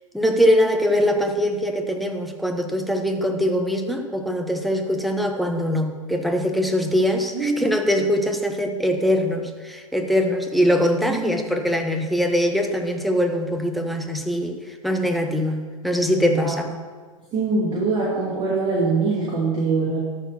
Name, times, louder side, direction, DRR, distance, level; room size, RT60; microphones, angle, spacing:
voice 1, 0.1-16.7, equal, ahead, 4 dB, 0.9 m, -22 dB
voice 2, 16.2-16.7 17.3-20.0, right 3 dB, 30° right, -7 dB, 2.8 m, -23 dB
13.0 x 4.4 x 5.9 m, 1.5 s
hypercardioid pair, 110°, 18 cm